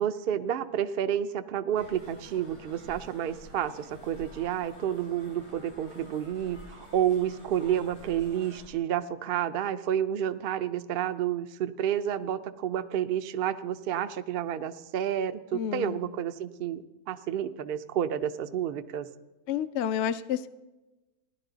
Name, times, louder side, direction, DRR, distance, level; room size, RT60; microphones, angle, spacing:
voice 1, 0.0-19.1, right 10 dB, 65° right, 9 dB, 0.5 m, -30 dB
sound 1, 1.7-8.6, equal, 90° left, 4.8 m, -49 dB
voice 2, 15.5-16.0 19.5-20.5, left 9 dB, 70° left, 11 dB, 0.7 m, -30 dB
16.5 x 11.5 x 3.9 m, 1.1 s
omnidirectional pair, 1.6 m